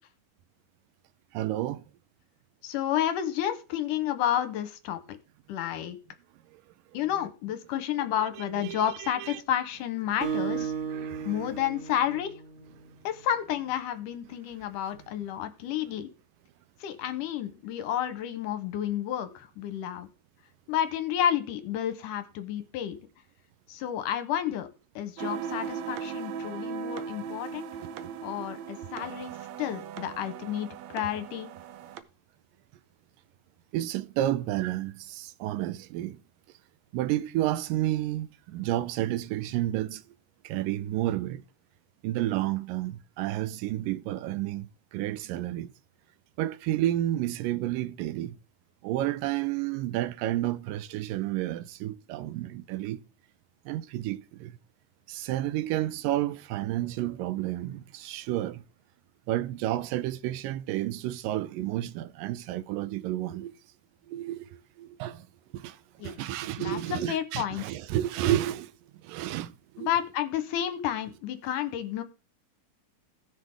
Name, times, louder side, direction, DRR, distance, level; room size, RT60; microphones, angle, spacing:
voice 1, 1.3-1.8 8.5-9.4 10.9-11.3 28.0-28.5 33.7-36.2 36.9-40.0 40.4-41.4 42.0-45.7 46.4-48.4 48.8-53.0 53.7-54.5 55.1-58.6 59.3-63.5 64.1-64.5 64.8-65.2 65.5-65.8 66.0-68.7 69.0-69.5 69.8-69.9, right 14 dB, 85° right, 2.3 m, -31 dB
voice 2, 2.6-5.2 5.5-6.0 6.9-10.7 11.3-12.3 13.0-16.1 16.8-20.1 20.7-23.0 23.7-24.7 25.0-27.7 28.2-29.3 29.6-31.5 66.0-66.2 66.6-67.6 69.8-72.0, left 10 dB, 80° left, 2.5 m, -31 dB
Acoustic guitar, 10.2-13.0, right 7 dB, 45° right, 2.9 m, -34 dB
sound 1, 25.2-32.0, right 7 dB, 70° right, 1.8 m, -38 dB
17.0 x 6.6 x 3.5 m
omnidirectional pair, 3.8 m